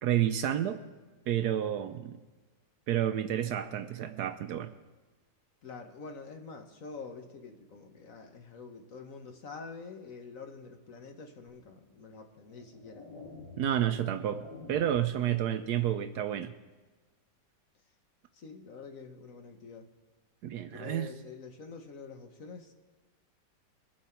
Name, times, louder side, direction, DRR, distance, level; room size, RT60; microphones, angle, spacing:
voice 1, 0.0-0.8 1.3-2.1 2.9-4.7 13.6-14.4 14.7-16.5 20.4-21.1, right 10 dB, 70° right, 10 dB, 1.0 m, -30 dB
voice 2, 5.6-13.0 18.3-19.9 20.7-22.7, left 4 dB, 55° left, 4 dB, 1.2 m, -46 dB
sound 1, 11.5-11.6 12.4-15.1, left 3 dB, 90° left, 3.1 m, -49 dB
22.0 x 7.5 x 4.4 m, 1.3 s
omnidirectional pair, 1.9 m